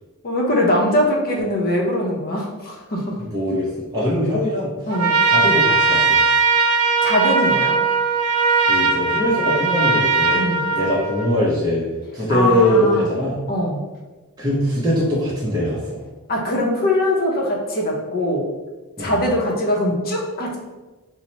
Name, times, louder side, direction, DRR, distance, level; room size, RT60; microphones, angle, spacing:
voice 1, 0.2-3.2 4.9-5.1 7.0-7.8 10.3-10.6 12.3-13.1 13.5-13.8 16.3-18.5 19.0-20.6, left 1 dB, 45° left, -2 dB, 0.6 m, -21 dB
voice 2, 3.2-4.7 5.2-6.2 8.6-10.5 10.7-11.9 12.1-13.4 14.4-16.0 19.0-19.2, equal, 20° right, -7 dB, 0.6 m, -21 dB
Trumpet, 4.9-11.4, right 4 dB, 80° right, 0.4 m, -19 dB
2.8 x 2.0 x 4.1 m, 1.2 s
head